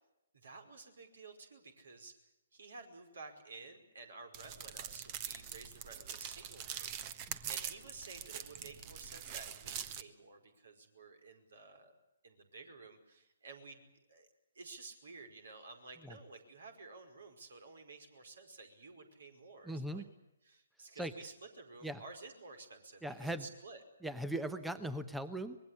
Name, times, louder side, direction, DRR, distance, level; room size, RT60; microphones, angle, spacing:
voice 1, 0.3-2.1 2.5-11.9 12.2-13.8 14.1-14.3 14.5-20.0 20.4-23.8, right 3 dB, 65° right, 6 dB, 5.1 m, -53 dB
sound 1, 4.3-10.0, right 9 dB, 30° right, 1.4 m, -44 dB
voice 2, 19.6-20.1 20.9-21.1 21.8-22.0 23.0-23.5 24.0-25.6, right 1 dB, 5° right, 12 dB, 1.0 m, -39 dB
25.0 x 21.5 x 8.5 m, 0.93 s
figure-of-eight pair, 130°, 0 cm